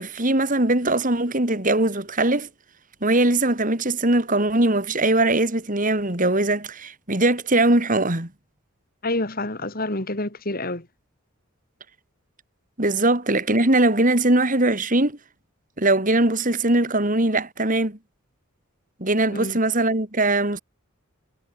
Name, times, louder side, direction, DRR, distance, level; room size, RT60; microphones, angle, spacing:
voice 1, 0.0-2.5 3.0-8.3 12.8-15.2 15.8-18.0 19.0-20.6, right 2 dB, 40° right, 3.2 m, -21 dB
voice 2, 9.0-10.9 19.3-19.6, left 2 dB, 45° left, 3.4 m, -28 dB
head